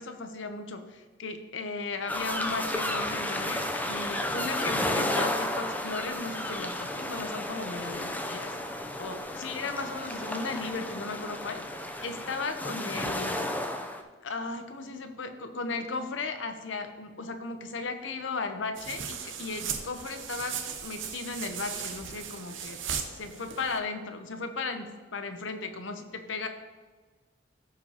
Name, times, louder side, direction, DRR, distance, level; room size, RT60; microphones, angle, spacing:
voice 1, 0.0-8.6 9.0-13.5 14.2-22.8 23.1-26.5, left 4 dB, 75° left, 7 dB, 0.8 m, -36 dB
sound 1, 2.1-14.0, left 1 dB, 10° left, 0.5 m, -32 dB
sound 2, 18.7-23.8, right 7 dB, 85° right, 0.8 m, -37 dB
14.5 x 5.1 x 2.9 m, 1.4 s
head